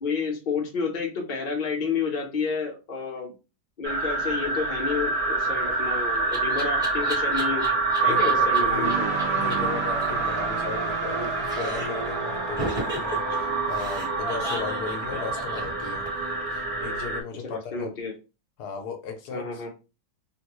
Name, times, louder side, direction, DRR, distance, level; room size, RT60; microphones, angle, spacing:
voice 1, 0.0-3.3 3.8-9.1 17.4-18.1 19.3-19.7, left 5 dB, 40° left, 0.8 m, -30 dB
sound 1, 3.8-17.2, right 3 dB, 45° right, 0.9 m, -27 dB
Laughter, 5.5-8.6 8.9-9.0 9.2-9.3 9.5-9.6 9.8-11.2 11.4-12.1 12.6-16.3, right 1 dB, 5° right, 1.2 m, -35 dB
voice 2, 8.1-16.1 16.5-17.9 18.6-19.7, left 6 dB, 75° left, 1.1 m, -36 dB
sound 2, 8.8-14.7, right 5 dB, 85° right, 1.4 m, -35 dB
3.6 x 2.3 x 3.0 m
omnidirectional pair, 1.8 m